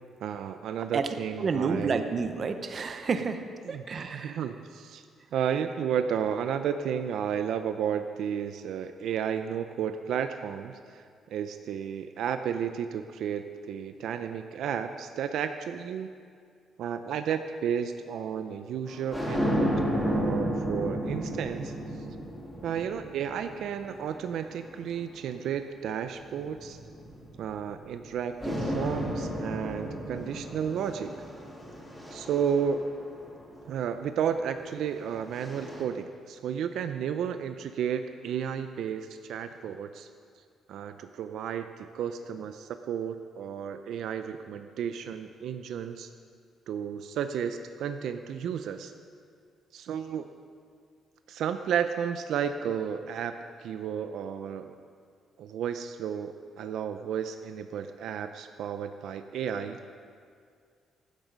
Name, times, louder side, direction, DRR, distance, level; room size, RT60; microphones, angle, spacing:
voice 1, 0.2-2.0 3.6-3.8 4.1-5.0 5.3-11.0 11.3-16.1 16.8-21.7 22.6-26.8 27.4-31.1 32.1-32.8 33.6-40.1 40.7-46.1 46.7-48.9 49.7-50.3 51.3-53.3 53.6-54.7 55.4-59.8, right 8 dB, 65° right, 8 dB, 0.5 m, -32 dB
voice 2, 0.9-3.4 3.7-4.4, right 5 dB, 35° right, 8 dB, 0.8 m, -30 dB
sound 1, 18.9-25.4 26.2-28.1 28.4-33.7 34.7-35.8, equal, 5° left, 2.0 m, -33 dB
15.0 x 12.0 x 5.2 m, 2.2 s
cardioid pair, 175°, 0 cm